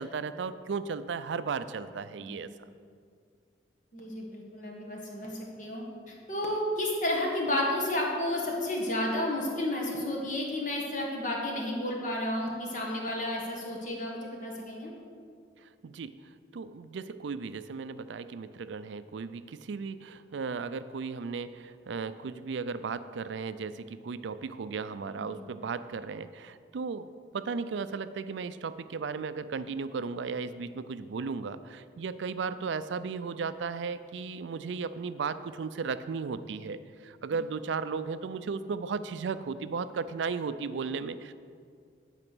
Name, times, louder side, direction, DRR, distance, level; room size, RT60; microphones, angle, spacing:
voice 1, 0.0-2.5 15.6-41.3, right 5 dB, 80° right, 13 dB, 0.4 m, -35 dB
voice 2, 3.9-14.9 25.4-25.5, left 1 dB, 45° left, -1 dB, 1.6 m, -32 dB
11.0 x 4.9 x 6.1 m, 2.2 s
head